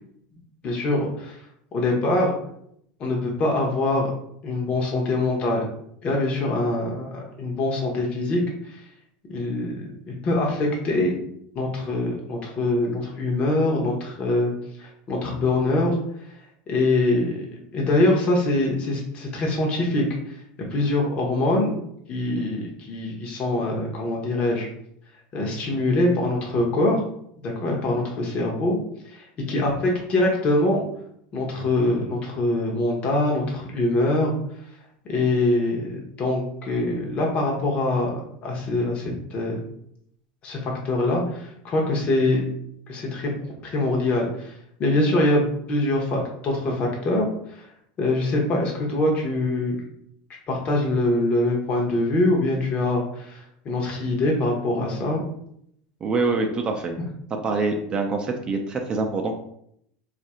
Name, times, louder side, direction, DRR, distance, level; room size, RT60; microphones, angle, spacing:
voice 1, 0.6-1.4 1.7-2.3 3.0-4.1 4.4-5.6 6.0-8.8 9.3-11.1 11.5-14.5 14.8-16.0 16.7-17.5 17.7-20.4 20.7-21.8 22.1-24.7 25.3-27.0 27.4-28.8 29.1-30.8 31.3-34.3 35.1-39.6 40.4-42.4 42.9-43.3 43.6-47.7 48.0-49.8 50.5-55.2, left 2 dB, 35° left, -1 dB, 0.8 m, -24 dB
voice 2, 56.0-56.9 57.4-59.3, right 3 dB, 25° right, 3 dB, 0.4 m, -25 dB
2.6 x 2.4 x 4.2 m, 0.71 s
supercardioid pair, 135°, 4 cm